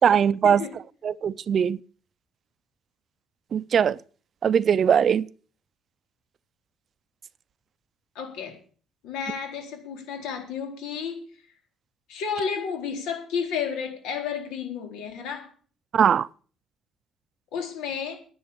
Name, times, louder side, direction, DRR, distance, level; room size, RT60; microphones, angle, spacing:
voice 1, 0.0-0.6 1.0-1.8 3.5-4.0 4.4-5.3 15.9-16.3, right 8 dB, 45° right, 0.5 m, -20 dB
voice 2, 8.2-8.6 9.0-11.2 12.1-15.5 17.5-18.2, left 6 dB, 85° left, 4.1 m, -32 dB
10.5 x 8.7 x 8.3 m
cardioid pair, 120°, 0 cm